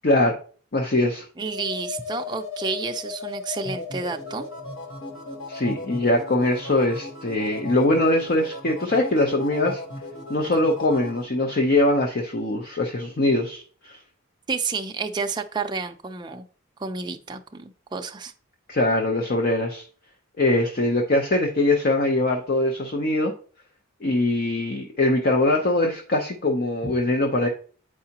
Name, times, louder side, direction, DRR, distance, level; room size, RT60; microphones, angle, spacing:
voice 1, 0.0-0.4 0.7-1.3 5.5-9.8 10.3-14.0 18.7-19.8 20.4-23.3 24.0-27.5, left 2 dB, 45° left, 3 dB, 0.7 m, -22 dB
sound 1, 1.4-11.2, left 2 dB, 65° left, 1.4 m, -36 dB
voice 2, 1.4-4.4 14.5-16.4 16.8-18.3 26.8-26.9, right 4 dB, 20° right, 5 dB, 0.5 m, -30 dB
8.2 x 4.8 x 2.9 m, 0.42 s
head